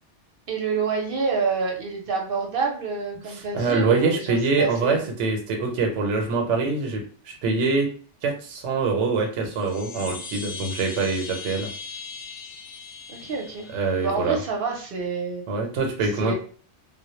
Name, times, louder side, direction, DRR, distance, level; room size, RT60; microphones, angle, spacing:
voice 1, 0.5-5.1 13.1-13.7 14.0-15.4 16.2-16.3, right 4 dB, 55° right, 0 dB, 0.7 m, -28 dB
voice 2, 3.3-7.9 8.2-11.7 13.7-14.4 15.5-16.3, right 4 dB, 85° right, 2 dB, 0.9 m, -24 dB
sound 1, 9.4-14.4, left 5 dB, 75° left, 0.9 m, -39 dB
2.1 x 2.0 x 2.9 m, 0.41 s
omnidirectional pair, 1.2 m